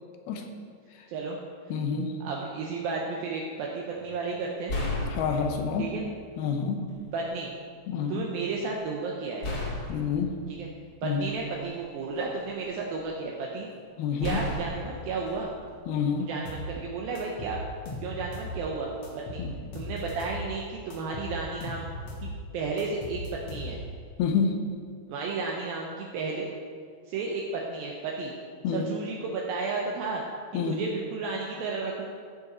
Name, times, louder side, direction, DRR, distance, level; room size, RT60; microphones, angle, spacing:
voice 1, 1.7-2.1 5.1-5.9 6.4-6.9 7.9-8.2 9.9-10.3 11.0-11.3 14.0-14.4 15.9-16.3 19.4-19.5 24.2-24.6 28.6-28.9 30.5-30.8, left 6 dB, 80° left, 4 dB, 2.7 m, -28 dB
voice 2, 2.2-4.7 5.8-6.0 7.1-7.5 8.1-9.5 10.5-10.7 11.0-13.7 14.2-15.5 16.2-17.6 18.0-19.0 19.3-19.4 19.7-21.9 22.2-23.2 23.5-23.8 25.1-26.5 27.1-28.3 28.7-30.2 30.6-32.1, right 4 dB, 75° right, -1 dB, 2.5 m, -33 dB
sound 1, 3.9-4.1 4.7-6.0 6.9-7.0 9.4-11.6 12.2-13.0 14.2-16.3, left 2 dB, 40° left, 2.6 m, -35 dB
sound 2, 16.5-16.7 17.2-18.6 19.0-20.5 20.9-22.3 22.8-24.0, left 1 dB, 55° left, 2.0 m, -38 dB
14.5 x 6.2 x 4.3 m, 2.1 s
omnidirectional pair, 4.5 m